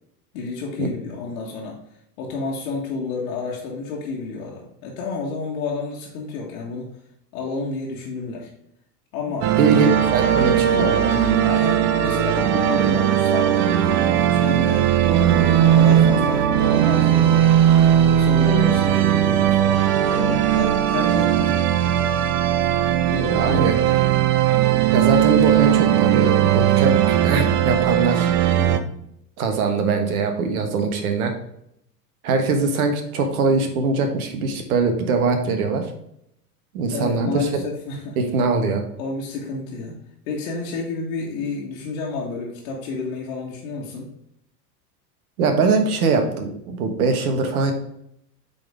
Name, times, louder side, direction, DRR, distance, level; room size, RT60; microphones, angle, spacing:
voice 1, 0.3-1.8 2.2-7.0 7.3-8.5 9.1-9.6 10.7-11.0 11.4-14.9 15.3-17.5 18.2-22.2 23.1-23.7 28.6-28.9 30.5-30.8 36.9-38.2 39.0-40.0 40.3-44.1, left 4 dB, 60° left, -3 dB, 1.6 m, -30 dB
sound 1, 9.4-28.8, right 11 dB, 35° right, 0.7 m, -18 dB
voice 2, 9.6-11.2 23.3-23.8 24.9-28.3 29.4-31.3 32.2-35.9 36.7-37.5 38.2-38.8 45.4-47.7, right 4 dB, 60° right, 6 dB, 1.4 m, -22 dB
8.3 x 4.1 x 3.5 m, 0.75 s
figure-of-eight pair, 85°, 48 cm